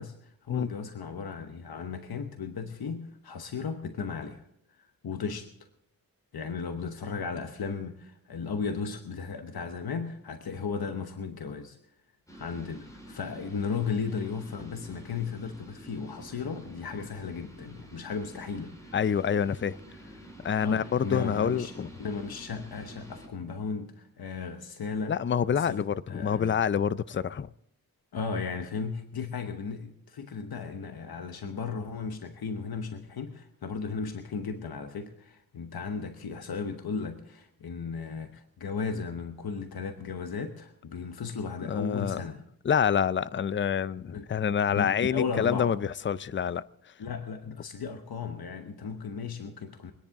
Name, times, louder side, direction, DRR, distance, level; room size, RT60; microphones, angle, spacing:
voice 1, 0.0-5.5 6.3-11.8 12.3-18.9 20.6-21.7 22.0-25.2 25.5-26.6 28.1-42.4 44.1-44.3 44.7-45.7 47.0-49.9, left 5 dB, 90° left, 1.0 m, -35 dB
sound 1, 12.3-23.3, right 1 dB, 10° left, 4.3 m, -48 dB
voice 2, 18.9-19.8 20.4-21.9 25.1-27.5 41.7-42.2 42.6-46.6, left 7 dB, 35° left, 0.4 m, -27 dB
24.0 x 10.5 x 3.6 m
wide cardioid pair, 90°, 36 cm